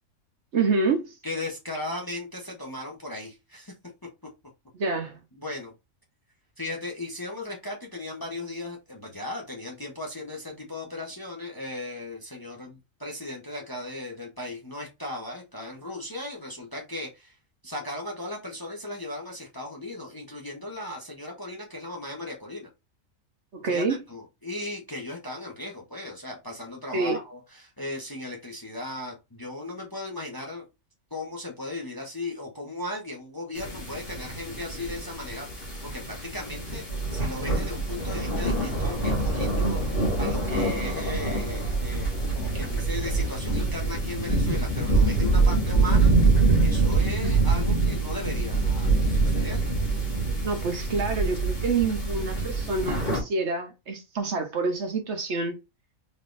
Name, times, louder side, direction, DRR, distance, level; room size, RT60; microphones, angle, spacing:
voice 1, 0.5-1.1 4.7-5.2 23.5-24.0 26.9-27.2 50.4-55.6, right 4 dB, 60° right, 1.0 m, -27 dB
voice 2, 1.2-3.7 5.3-5.7 6.6-17.3 17.6-22.7 23.7-30.7 31.1-36.8 37.1-46.1 46.6-49.6, left 2 dB, 20° left, 0.8 m, -37 dB
sound 1, 33.6-53.2, right 3 dB, 40° left, 1.8 m, -25 dB
4.2 x 3.5 x 2.5 m
omnidirectional pair, 1.5 m